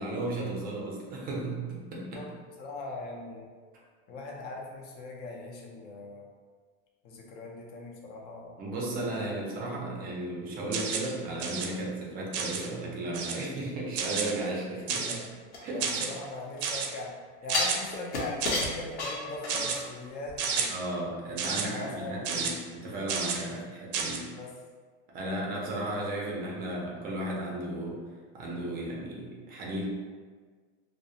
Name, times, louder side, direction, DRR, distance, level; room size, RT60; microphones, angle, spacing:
voice 1, 0.0-2.2 8.6-15.2 15.6-16.1 20.7-24.3 25.1-28.0 28.3-29.8, right 1 dB, 25° right, -3 dB, 0.5 m, -35 dB
voice 2, 2.6-3.4 4.1-6.3 7.0-8.5 14.7-15.3 15.7-17.1 17.4-20.7 21.6-22.6 23.4-23.7 24.3-24.5, left 2 dB, 30° left, -1 dB, 0.4 m, -40 dB
sound 1, 10.7-11.1 11.4-11.7 12.3-12.7 13.1-13.5 14.0-14.3 14.9-15.3 15.8-16.1 16.6-16.9 17.5-17.8 18.4-18.7 19.5-19.8 20.4-20.7 21.4-21.7 22.2-22.5 23.1-23.4 23.9-24.2, right 6 dB, 85° right, 0.5 m, -31 dB
sound 2, 15.5-16.7 17.5-19.9 20.3-20.4, left 2 dB, 85° left, 0.8 m, -33 dB
2.4 x 2.0 x 2.7 m, 1.5 s
supercardioid pair, 140°, 33 cm